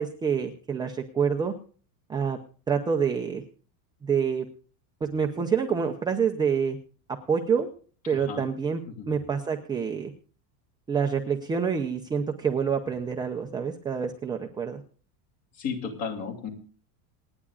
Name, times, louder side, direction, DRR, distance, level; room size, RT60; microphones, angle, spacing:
voice 1, 0.0-1.5 2.1-2.4 2.7-3.4 4.0-4.5 5.0-6.8 7.1-7.7 8.1-8.8 9.1-10.1 10.9-14.8, right 6 dB, 10° right, 2 dB, 0.6 m, -27 dB
voice 2, 8.1-8.5 8.9-9.1 15.6-16.5, left 6 dB, 40° left, 5 dB, 2.7 m, -34 dB
27.5 x 9.9 x 2.4 m, 0.41 s
cardioid pair, 180°, 42 cm